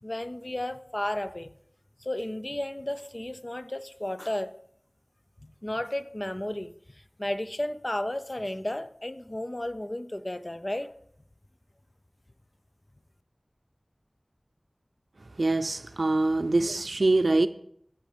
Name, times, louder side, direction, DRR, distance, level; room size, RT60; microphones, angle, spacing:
voice 1, 0.0-1.5 2.0-4.6 5.6-10.9 16.6-16.8, left 1 dB, 35° left, 0.5 m, -33 dB
voice 2, 15.4-17.5, right 2 dB, 85° right, 0.4 m, -24 dB
14.5 x 5.6 x 3.4 m
wide cardioid pair, 40°, 0 cm